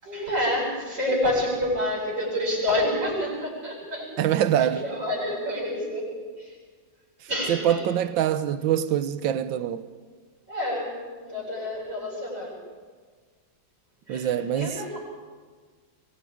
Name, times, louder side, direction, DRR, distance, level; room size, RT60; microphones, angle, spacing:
voice 1, 0.0-4.1 4.6-6.1 6.4-6.5 7.3-7.8 10.5-10.9 11.2-12.5 14.1-15.0, left 1 dB, 30° right, 8.4 m, -28 dB
voice 2, 4.2-4.8 7.5-9.9 14.1-14.8, right 10 dB, 90° right, 1.6 m, -24 dB
25.5 x 23.0 x 5.1 m
omnidirectional pair, 2.0 m